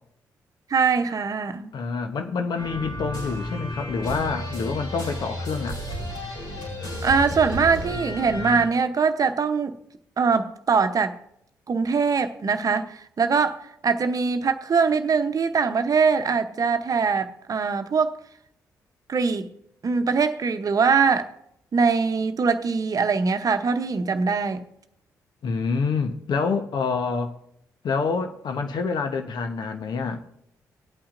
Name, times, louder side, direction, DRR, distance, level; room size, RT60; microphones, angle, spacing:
voice 1, 0.7-1.7 7.0-9.8 10.2-11.2 11.7-18.2 19.1-19.5 19.8-21.3 21.7-24.6, right 5 dB, 50° right, 0.8 m, -22 dB
voice 2, 1.7-5.8 25.4-27.3 27.8-30.2, left 5 dB, 65° left, 1.0 m, -27 dB
sound 1, 2.6-8.6, left 1 dB, 80° left, 5.0 m, -32 dB
19.5 x 8.6 x 2.6 m
hypercardioid pair, 45°, 8 cm